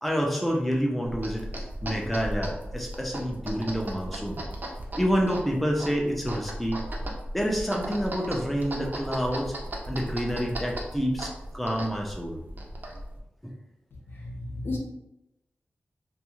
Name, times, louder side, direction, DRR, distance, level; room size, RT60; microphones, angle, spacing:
voice 1, 0.0-1.5 1.8-4.4 5.0-6.8 7.3-9.5 9.9-12.4 13.4-13.5, equal, ahead, 0 dB, 0.5 m, -28 dB
sound 1, 1.0-13.2, right 1 dB, 50° right, 0.5 m, -36 dB
voice 2, 14.2-14.8, left 2 dB, 65° left, -1 dB, 0.6 m, -33 dB
2.3 x 2.3 x 3.0 m, 0.91 s
cardioid pair, 55°, 4 cm